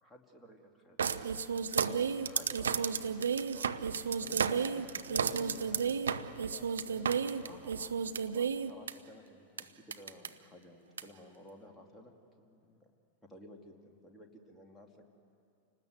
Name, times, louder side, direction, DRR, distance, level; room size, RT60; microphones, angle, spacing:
voice 1, 0.0-1.0 1.8-3.9 7.4-7.9 8.3-12.9 13.2-15.1, left 1 dB, 10° left, 0 dB, 2.7 m, -55 dB
sound 1, 1.0-8.9 9.6-9.7 9.9-10.3 11.0-11.1, right 6 dB, 70° right, 0.7 m, -32 dB
voice 2, 4.2-7.6, left 6 dB, 25° left, 2 dB, 1.6 m, -52 dB
29.5 x 19.5 x 8.1 m, 2.4 s
figure-of-eight pair, 90°, 0 cm